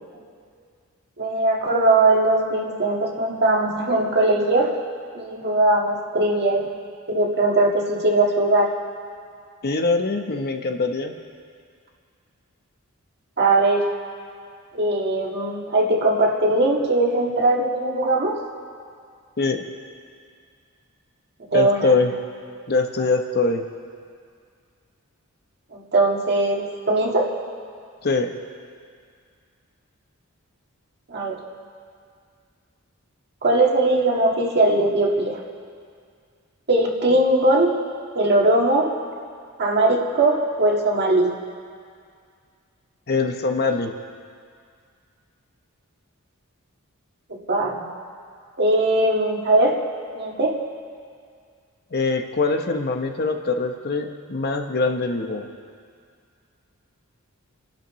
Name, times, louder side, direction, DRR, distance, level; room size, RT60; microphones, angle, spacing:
voice 1, 1.2-4.7 5.2-6.7 7.1-8.7 13.4-13.9 14.7-18.4 21.5-21.9 25.7-27.3 31.1-31.4 33.4-35.4 36.7-37.8 38.2-38.9 39.6-41.3 47.5-47.8 48.6-49.8 50.1-50.6, right 2 dB, 50° right, -1 dB, 1.8 m, -20 dB
voice 2, 9.6-11.1 19.4-19.7 21.5-22.1 22.7-23.7 28.0-28.3 43.1-43.9 51.9-55.5, left 3 dB, 45° left, 4 dB, 0.9 m, -23 dB
27.5 x 11.5 x 3.1 m, 2.2 s
head